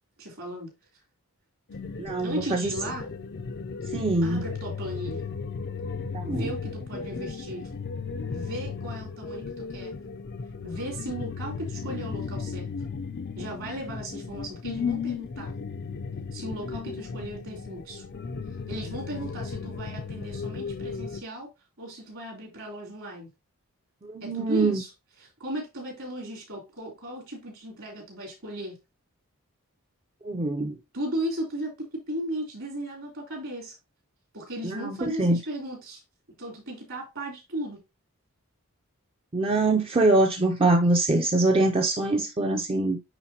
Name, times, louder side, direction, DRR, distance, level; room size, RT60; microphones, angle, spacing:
voice 1, 0.2-0.7 2.2-3.1 4.2-5.2 6.2-7.7 8.2-9.9 10.6-12.7 13.4-15.5 16.3-18.0 18.7-21.5 21.8-23.3 24.2-24.9 25.2-28.8 30.9-33.8 34.3-36.0 36.4-37.8, right 1 dB, 65° right, 3.2 m, -36 dB
sound 1, 1.7-21.2, left 5 dB, 50° left, 0.5 m, -35 dB
voice 2, 2.0-2.7 3.9-4.4 6.1-6.5 24.0-24.8 30.2-30.8 34.6-35.4 39.3-43.0, right 2 dB, 25° right, 0.5 m, -24 dB
9.0 x 3.8 x 2.8 m
head